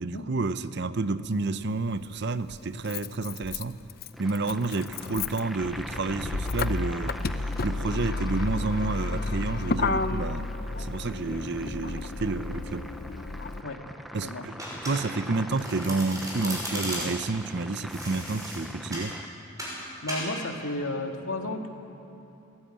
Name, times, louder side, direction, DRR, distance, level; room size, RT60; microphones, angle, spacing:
voice 1, 0.0-3.8 4.2-7.2 7.6-10.5 10.8-12.9 14.1-14.5 14.8-19.2, right 3 dB, 55° right, 0.6 m, -30 dB
Motor vehicle (road), 1.2-1.3 2.5-13.6, left 3 dB, 45° left, 0.6 m, -32 dB
sound 1, 4.1-19.3, equal, ahead, 0.7 m, -43 dB
Domestic sounds home sounds, 14.6-15.3 15.6-17.3 17.9-19.1 19.6-19.8 20.1-20.3, equal, 15° right, 6.1 m, -35 dB
voice 2, 20.0-21.7, left 2 dB, 80° left, 1.9 m, -33 dB
22.0 x 17.5 x 8.8 m
head